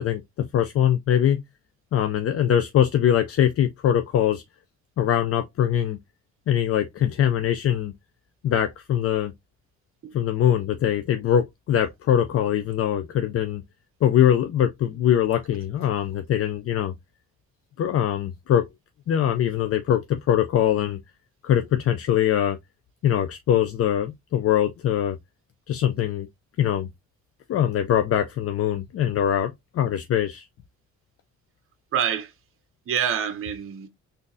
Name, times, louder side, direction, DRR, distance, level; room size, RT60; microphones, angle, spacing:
voice 1, 0.0-1.4 1.9-4.4 5.0-6.0 6.5-7.9 8.4-9.3 10.1-13.6 14.0-16.9 17.8-18.6 19.1-21.0 21.4-22.6 23.0-25.2 25.7-26.3 26.6-26.9 27.5-30.5, left 10 dB, 50° left, 0.4 m, -22 dB
voice 2, 31.9-32.3 32.9-33.9, right 8 dB, 45° right, 0.6 m, -26 dB
3.8 x 2.6 x 2.6 m
cardioid pair, 90°, 30 cm